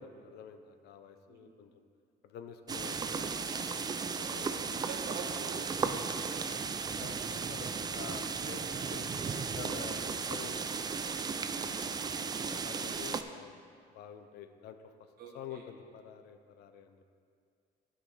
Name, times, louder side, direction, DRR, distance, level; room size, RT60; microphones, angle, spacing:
voice 1, 0.0-1.8 2.2-3.6 4.2-4.6 6.9-11.3 12.1-13.6 13.9-14.8 15.3-17.1, left 8 dB, 75° left, 9 dB, 0.6 m, -49 dB
sound 1, 2.7-13.2, right 5 dB, 25° right, 0.4 m, -35 dB
voice 2, 4.2-6.7 15.2-15.6, right 4 dB, 65° right, 0 dB, 1.4 m, -47 dB
11.5 x 5.0 x 4.1 m, 2.3 s
cardioid pair, 110°, 17 cm